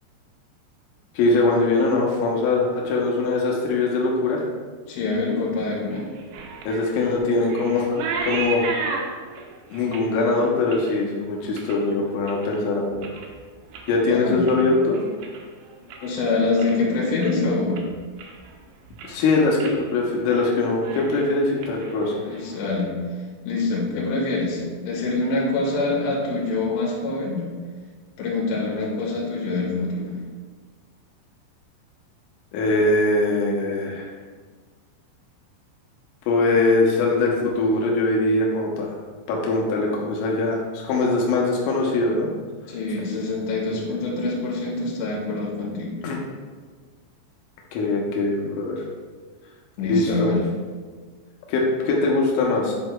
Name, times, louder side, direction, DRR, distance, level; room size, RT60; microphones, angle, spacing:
voice 1, 1.1-4.5 6.7-8.6 9.7-13.1 13.9-15.0 19.0-22.1 32.5-34.1 36.3-39.0 39.3-42.3 46.0-46.2 47.7-48.8 49.9-50.3 51.5-52.7, left 3 dB, 90° left, -2 dB, 3.4 m, -22 dB
voice 2, 4.9-6.0 14.1-14.5 16.0-17.8 22.2-22.9 23.4-27.4 28.2-30.2 42.7-46.0 49.8-50.5, left 3 dB, 70° left, -4 dB, 3.4 m, -25 dB
sound 1, 5.9-12.6 12.9-13.4 13.7-16.2 16.5-16.9 17.2-17.3 17.8-18.6 18.8-19.2 19.6-19.8 20.1-20.5 20.7-22.6, right 4 dB, 85° right, 2.2 m, -34 dB
9.7 x 5.3 x 2.3 m, 1.5 s
omnidirectional pair, 5.5 m